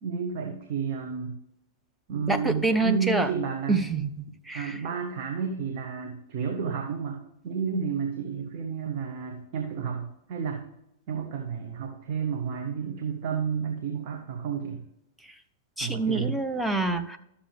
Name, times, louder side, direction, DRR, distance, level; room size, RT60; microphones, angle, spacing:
voice 1, 0.0-1.4 2.1-3.8 4.5-10.6 11.1-14.8 15.8-16.4, right 6 dB, 45° right, 2 dB, 1.2 m, -31 dB
voice 2, 2.3-3.3 3.7-4.8 15.2-15.3 15.8-17.2, right 3 dB, 5° right, 6 dB, 0.8 m, -27 dB
12.5 x 7.1 x 3.4 m, 0.83 s
figure-of-eight pair, 100°, 0 cm